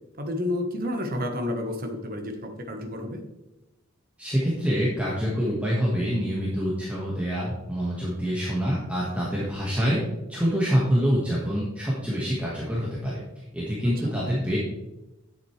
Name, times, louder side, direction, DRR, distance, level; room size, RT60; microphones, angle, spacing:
voice 1, 0.2-3.2 14.0-14.1, left 1 dB, 40° right, 4 dB, 1.2 m, -30 dB
voice 2, 4.2-10.0 10.3-13.2 13.5-14.6, equal, 5° right, -6 dB, 1.5 m, -26 dB
10.0 x 7.9 x 3.3 m, 0.99 s
head